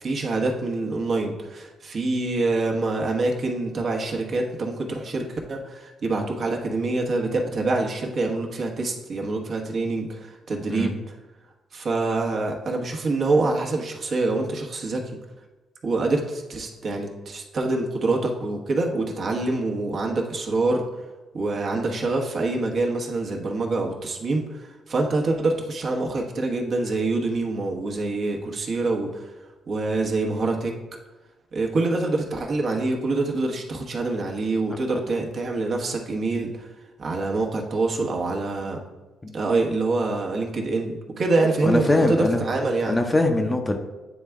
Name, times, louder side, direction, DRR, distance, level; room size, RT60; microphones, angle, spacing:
voice 1, 0.0-11.1 11.7-15.0 15.8-20.8 21.3-29.3 29.7-30.7 31.5-36.7 37.0-38.8 39.3-43.0, right 3 dB, 50° right, 1 dB, 1.1 m, -25 dB
voice 2, 41.6-42.5 42.9-43.8, left 2 dB, 20° left, 4 dB, 0.7 m, -22 dB
9.1 x 3.4 x 3.6 m, 1.1 s
cardioid pair, 90°, 0 cm